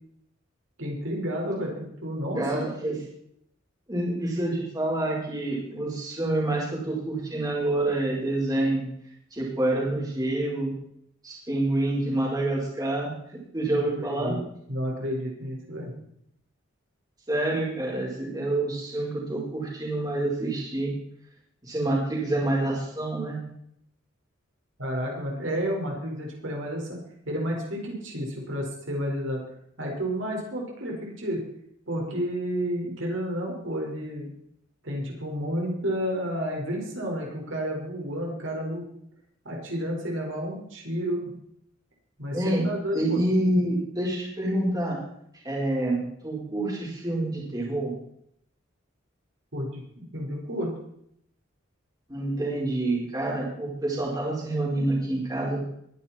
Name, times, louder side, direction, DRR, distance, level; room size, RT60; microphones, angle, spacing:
voice 1, 0.8-3.0 14.0-14.4 14.7-15.9 24.8-27.0 27.3-29.4 29.8-31.4 31.9-34.3 34.8-38.9 39.4-41.3 42.2-43.2 49.5-50.7, equal, 70° right, -1 dB, 5.4 m, -31 dB
voice 2, 2.4-2.9 3.9-8.9 9.3-10.7 11.2-13.1 13.5-14.3 17.3-20.9 21.6-23.4 42.3-42.6 42.9-45.0 45.4-47.9 52.1-55.6, right 1 dB, 20° right, -4 dB, 4.8 m, -27 dB
22.5 x 11.0 x 4.5 m, 0.72 s
head